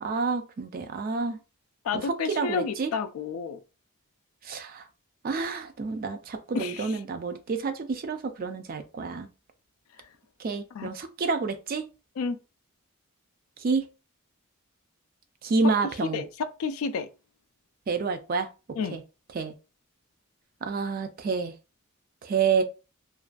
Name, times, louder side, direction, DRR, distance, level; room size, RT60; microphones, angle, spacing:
voice 1, 0.0-1.4 1.9-2.9 4.4-4.9 5.2-9.3 10.4-11.8 13.6-13.9 15.4-16.2 17.9-18.5 18.9-19.0 19.3-19.5 20.6-21.5 22.2-22.6, right 4 dB, 45° right, 0.3 m, -29 dB
voice 2, 1.8-3.6 6.5-6.9 10.7-10.9 12.2-12.4 16.1-17.1 18.8-19.0, left 5 dB, 75° left, 0.3 m, -30 dB
2.4 x 2.2 x 2.4 m
head